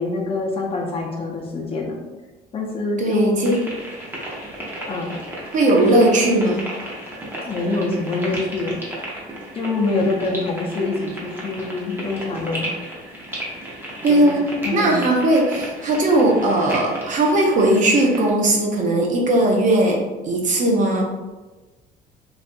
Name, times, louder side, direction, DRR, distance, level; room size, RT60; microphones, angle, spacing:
voice 1, 0.0-1.9 2.5-3.5 4.9-5.2 7.4-8.8 9.5-12.7 14.1-14.3 14.6-15.1, left 3 dB, 35° left, 0 dB, 0.6 m, -25 dB
voice 2, 3.0-3.7 5.5-6.6 14.0-14.5 14.7-21.0, right 1 dB, 50° right, 0 dB, 0.7 m, -18 dB
sound 1, 3.4-18.3, right 1 dB, 15° right, 0.8 m, -34 dB
3.2 x 2.4 x 2.6 m, 1.2 s
cardioid pair, 110°, 17 cm